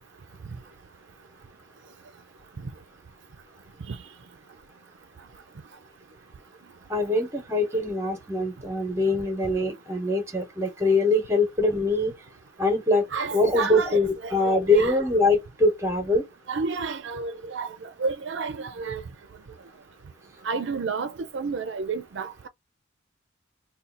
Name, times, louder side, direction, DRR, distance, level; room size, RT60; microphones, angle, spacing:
voice 1, 6.9-12.1 12.6-13.1 13.3-16.2, left 2 dB, 15° right, 0.9 m, -23 dB
voice 2, 13.1-15.0 16.5-17.7 18.0-19.0 20.4-22.5, right 4 dB, 65° right, 0.4 m, -31 dB
2.7 x 2.3 x 3.7 m
head